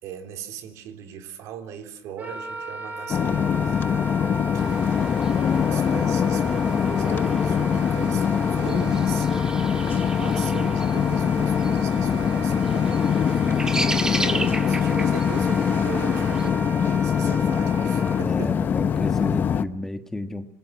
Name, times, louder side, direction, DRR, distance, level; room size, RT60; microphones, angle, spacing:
voice 1, 0.0-5.0 5.7-9.4 9.7-13.8 14.2-18.6, right 8 dB, 65° right, 3.6 m, -39 dB
Wind instrument woodwind instrument, 2.2-18.2, right 3 dB, 30° right, 4.4 m, -36 dB
sound 1, 3.1-19.6, left 8 dB, 35° left, 1.0 m, -23 dB
sound 2, 4.6-16.5, right 2 dB, 10° right, 1.7 m, -34 dB
voice 2, 18.2-20.5, left 1 dB, 5° left, 1.5 m, -32 dB
26.0 x 22.0 x 7.6 m
cardioid pair, 130°, 6 cm